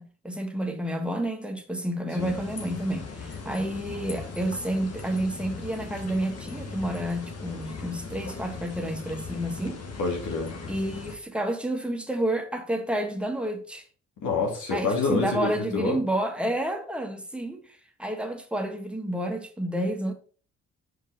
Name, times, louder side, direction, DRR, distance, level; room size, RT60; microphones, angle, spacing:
voice 1, 0.0-9.8 10.7-13.8 14.7-20.1, right 1 dB, 5° right, 1.4 m, -30 dB
sound 1, 2.2-11.2, left 4 dB, 50° left, 1.5 m, -39 dB
voice 2, 10.0-10.5 14.2-16.0, left 3 dB, 70° left, 2.4 m, -27 dB
5.3 x 4.6 x 4.1 m
supercardioid pair, 50°, 32 cm